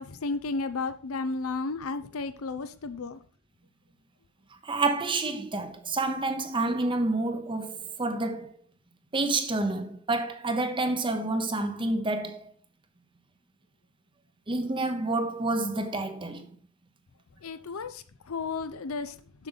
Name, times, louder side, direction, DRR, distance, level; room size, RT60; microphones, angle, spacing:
voice 1, 0.0-3.2 17.4-19.5, left 3 dB, 75° left, 0.6 m, -33 dB
voice 2, 4.6-8.5 9.1-12.5 14.5-16.5, right 2 dB, 25° right, 0.8 m, -29 dB
7.1 x 6.6 x 4.0 m
head